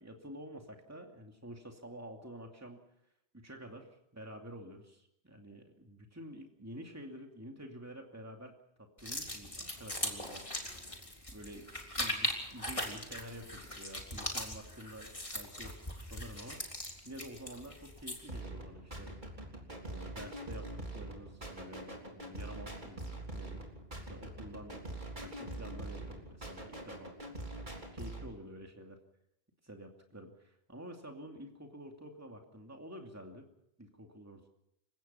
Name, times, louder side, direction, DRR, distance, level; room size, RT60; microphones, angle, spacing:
voice 1, 0.0-2.8 3.3-10.7 11.3-11.7 12.0-15.1 15.3-15.8 16.1-16.6 17.0-19.2 19.8-23.6 24.0-27.1 27.9-29.0 29.6-33.5 33.8-34.5, equal, 15° right, 2 dB, 2.6 m, -49 dB
sound 1, 9.0-18.4, left 1 dB, 30° left, 3.6 m, -40 dB
sound 2, 18.3-28.3, right 1 dB, 50° right, 3.8 m, -44 dB
28.5 x 16.5 x 5.7 m, 0.78 s
omnidirectional pair, 1.1 m